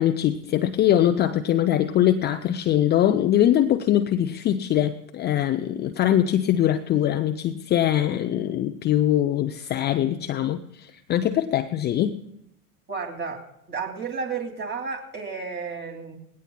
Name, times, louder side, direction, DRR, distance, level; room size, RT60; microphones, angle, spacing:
voice 1, 0.0-12.2, left 11 dB, 25° left, 8 dB, 0.5 m, -22 dB
voice 2, 12.9-13.4 13.7-16.2, right 5 dB, 25° right, 3 dB, 2.8 m, -32 dB
20.0 x 17.0 x 2.3 m, 0.77 s
figure-of-eight pair, 85°, 44 cm